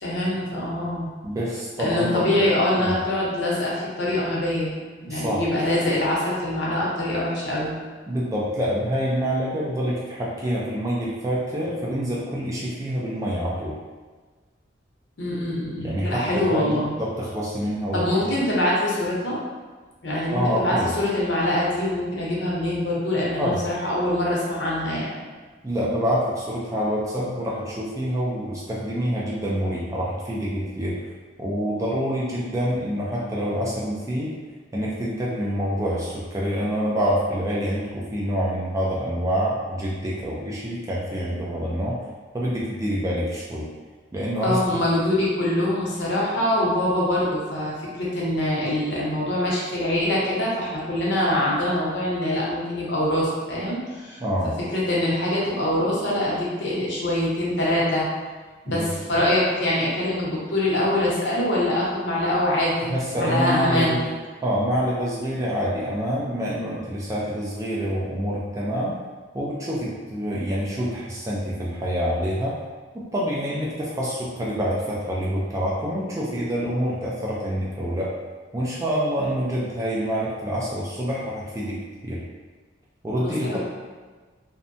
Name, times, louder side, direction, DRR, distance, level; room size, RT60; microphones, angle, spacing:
voice 1, 0.0-1.1 1.8-4.7 5.0-7.7 15.2-16.9 17.9-19.4 20.0-25.1 44.4-47.7 48.0-54.2 54.7-58.1 58.6-64.0 83.2-83.6, left 1 dB, 70° left, -5 dB, 0.7 m, -24 dB
voice 2, 1.2-2.3 2.8-2.9 5.1-5.4 8.1-13.7 15.8-18.3 20.3-20.9 23.4-23.6 25.6-31.0 31.4-34.3 34.7-42.0 42.3-43.7 44.1-44.8 54.2-54.5 58.7-58.9 62.9-64.1 64.4-69.0 69.3-72.6 72.9-78.1 78.5-81.8 82.0-82.2 83.0-83.6, equal, 15° right, -5 dB, 0.3 m, -26 dB
2.6 x 2.1 x 2.6 m, 1.4 s
head